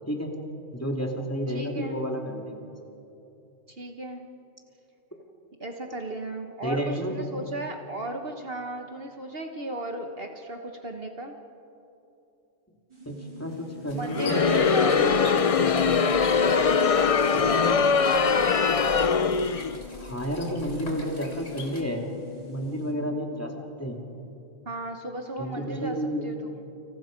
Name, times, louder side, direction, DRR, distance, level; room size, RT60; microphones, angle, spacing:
voice 1, 0.7-2.7 6.6-7.3 13.1-15.4 17.3-17.9 20.0-22.0 22.5-24.0 25.4-26.3, equal, 10° left, 1 dB, 2.5 m, -31 dB
voice 2, 1.5-2.0 3.7-4.2 5.6-11.4 13.9-15.4 16.2-17.8 24.6-26.0 26.2-26.5, right 1 dB, 50° right, 4 dB, 1.5 m, -35 dB
sound 1, 12.9-22.9, left 4 dB, 20° right, 3.8 m, -45 dB
sound 2, 13.9-21.8, left 2 dB, 70° left, 3.4 m, -43 dB
Crowd, 14.1-19.8, left 5 dB, 40° left, 0.5 m, -22 dB
29.5 x 26.5 x 5.2 m, 2.9 s
omnidirectional pair, 1.3 m